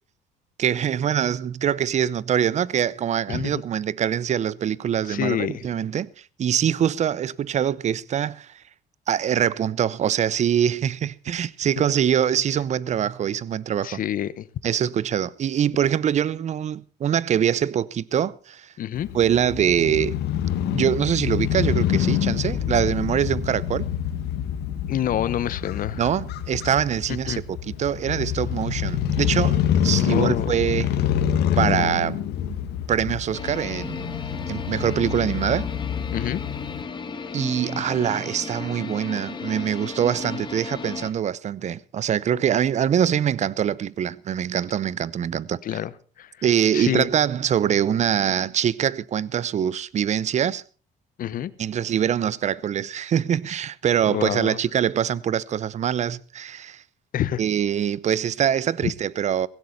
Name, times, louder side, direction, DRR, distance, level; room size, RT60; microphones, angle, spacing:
voice 1, 0.6-6.1 6.4-8.5 9.1-14.0 14.6-18.7 19.1-20.2 20.7-23.9 25.9-31.0 31.6-32.2 32.9-34.2 34.5-35.7 37.3-45.6 46.4-50.6 51.6-56.8 57.4-59.5, right 9 dB, 45° right, 0.7 m, -24 dB
voice 2, 3.3-3.6 5.1-5.6 13.8-14.5 18.8-19.1 24.9-26.0 27.3-27.4 30.1-30.5 36.1-36.4 45.6-45.9 46.2-46.3 46.7-47.1 51.2-51.5 54.1-54.6 57.1-57.4, left 11 dB, 55° left, 1.0 m, -27 dB
Crow / Motorcycle, 18.9-36.8, left 10 dB, 80° left, 1.9 m, -26 dB
sound 1, 33.3-41.1, left 5 dB, 25° left, 1.9 m, -35 dB
16.5 x 16.0 x 4.1 m
cardioid pair, 110°, 17 cm